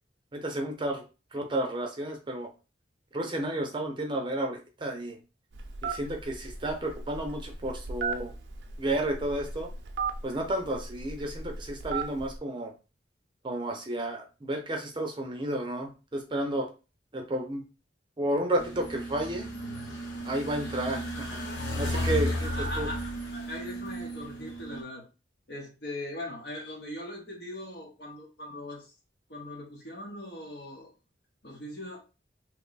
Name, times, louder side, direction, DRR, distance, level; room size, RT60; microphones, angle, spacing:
voice 1, 0.3-1.0 1.3-2.5 3.1-5.2 5.8-8.3 8.8-9.7 10.2-12.7 13.4-16.7 17.1-17.6 18.2-19.5 20.2-21.4 21.8-22.5 22.8-22.9, right 1 dB, 25° right, 2 dB, 0.5 m, -32 dB
Telephone, 5.5-12.4, right 5 dB, 75° right, 0.5 m, -37 dB
sound 1, 18.6-24.8, equal, 90° left, 0.8 m, -34 dB
voice 2, 21.9-25.0 25.5-28.9 29.3-30.9 31.4-32.0, left 1 dB, 60° left, -1 dB, 0.9 m, -40 dB
2.9 x 2.3 x 3.9 m, 0.32 s
head